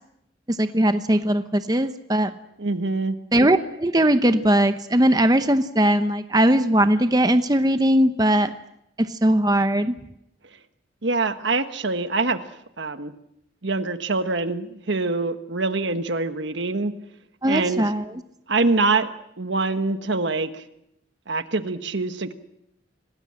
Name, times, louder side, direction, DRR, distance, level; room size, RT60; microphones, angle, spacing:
voice 1, 0.6-2.3 3.3-8.5 9.0-9.9 17.4-18.0, right 1 dB, 20° right, 10 dB, 0.8 m, -19 dB
voice 2, 2.6-3.2 11.0-12.4 12.8-13.1 13.6-16.9 17.4-17.9 18.5-19.1 19.4-20.6 21.3-22.3, right 3 dB, 70° right, 10 dB, 1.3 m, -24 dB
26.5 x 19.0 x 7.6 m, 0.81 s
head